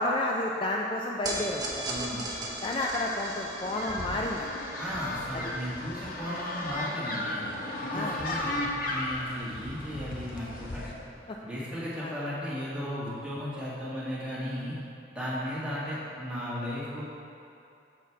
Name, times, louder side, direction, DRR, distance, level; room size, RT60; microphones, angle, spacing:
voice 1, 0.0-2.1 2.6-4.5 5.3-5.4 7.9-8.2 11.3-11.4 12.0-12.1, left 1 dB, 30° left, -1 dB, 0.3 m, -31 dB
sound 1, 1.2-7.6, right 2 dB, 25° right, 1.0 m, -39 dB
voice 2, 1.9-2.3 4.8-7.5 7.8-10.9 11.4-14.7 15.1-17.0, equal, 5° right, -9 dB, 1.6 m, -35 dB
sound 2, 3.5-10.9, left 1 dB, 55° left, 0.8 m, -35 dB
7.1 x 4.7 x 4.5 m, 2.7 s
head